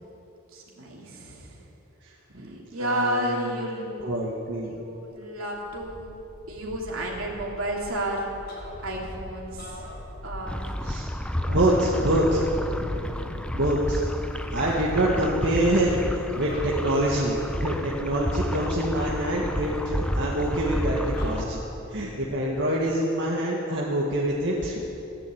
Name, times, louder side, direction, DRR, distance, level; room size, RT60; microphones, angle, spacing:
voice 1, 0.5-1.7 2.4-3.9 4.6-6.2 6.5-8.3 8.8-9.8 10.2-10.7 11.4-11.6 11.8-12.0 22.7-22.8, right 1 dB, 80° right, -2 dB, 3.1 m, -32 dB
voice 2, 2.3-3.5 4.0-4.8 10.8-11.1 11.5-12.5 13.5-14.1 14.5-21.6 21.9-25.0, right 1 dB, 60° right, -4 dB, 1.7 m, -25 dB
sound 1, 5.2-5.3 5.5-14.0, left 1 dB, 85° left, 2.1 m, -42 dB
sound 2, 8.5-9.1 9.5-10.6 11.6-12.5 13.7-14.2 14.7-15.2 16.5-17.3 18.6-19.6 21.2-21.9, left 2 dB, 50° left, 4.6 m, -45 dB
sound 3, 10.5-21.4, equal, 5° left, 0.6 m, -31 dB
15.5 x 10.5 x 8.6 m, 2.9 s
head